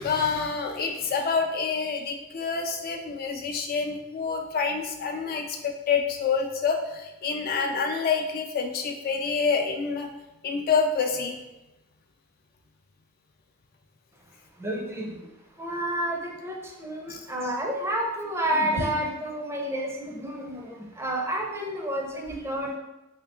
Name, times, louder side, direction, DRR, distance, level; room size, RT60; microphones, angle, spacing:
voice 1, 0.0-10.1 10.4-11.4 17.1-17.2, left 5 dB, 45° left, 4 dB, 0.3 m, -27 dB
voice 2, 14.6-15.2 15.5-22.8, right 1 dB, 15° right, 0 dB, 0.5 m, -30 dB
3.4 x 2.7 x 3.4 m, 0.96 s
head